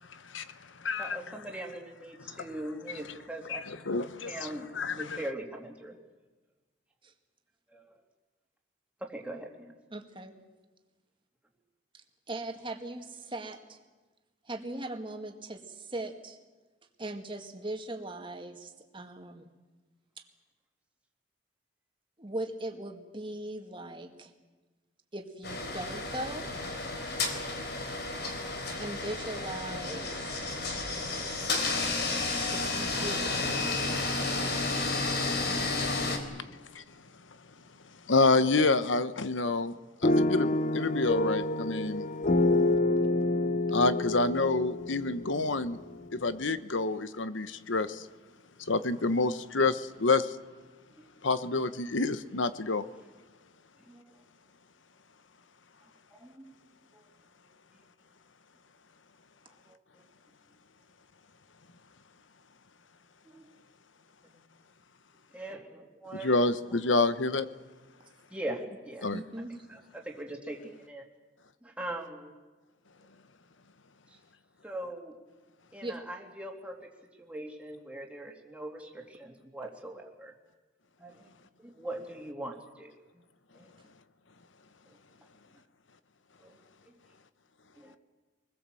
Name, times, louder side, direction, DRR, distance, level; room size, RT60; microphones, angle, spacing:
voice 1, 0.1-1.2 2.3-2.5 3.5-5.2 36.1-36.2 36.7-36.8 38.1-39.7 40.0-42.1 43.7-45.8 46.1-48.1 48.6-50.4 51.2-52.8 66.2-67.5 69.0-69.2, left 3 dB, 75° left, 1.1 m, -28 dB
voice 2, 1.0-3.6 4.2-4.7 4.9-6.0 7.7-7.9 9.0-9.7 51.0-51.1 53.9-54.2 56.1-56.5 56.9-57.0 59.7-59.8 63.2-63.5 64.2-64.4 65.3-66.6 66.9-67.0 68.3-69.1 69.7-71.0 71.6-72.3 74.1-74.2 74.6-75.1 75.7-76.8 77.2-80.3 81.0-81.3 81.6-83.2 83.5-83.7 84.9-85.0 86.4-86.6 86.9-87.0 87.8-88.0, right 1 dB, 5° right, 2.9 m, -41 dB
voice 3, 9.9-10.3 12.3-13.8 14.5-16.4 17.0-19.5 22.2-24.3 25.1-26.5 28.8-30.5 32.5-33.6 42.5-42.6 43.7-43.8 69.1-69.5 75.8-76.0, right 1 dB, 25° right, 2.1 m, -39 dB
sound 1, 25.4-36.2, left 3 dB, 55° left, 3.7 m, -32 dB
sound 2, 40.0-46.1, left 2 dB, 40° left, 0.7 m, -28 dB
26.0 x 21.0 x 7.8 m
head